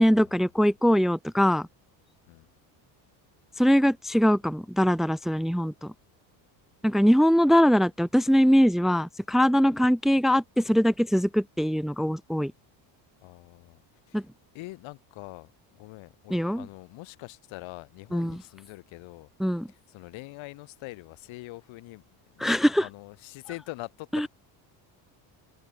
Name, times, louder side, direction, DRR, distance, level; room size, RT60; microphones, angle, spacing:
voice 1, 0.0-1.7 3.6-5.9 6.8-12.5 14.1-14.2 16.3-16.6 18.1-18.4 19.4-19.7 22.4-22.9 24.1-24.3, equal, ahead, 1.1 m, -22 dB
voice 2, 13.2-13.8 14.1-14.2 14.5-19.3 19.7-22.0 22.3-24.3, left 20 dB, 70° left, 4.5 m, -44 dB
cardioid pair, 125°, 48 cm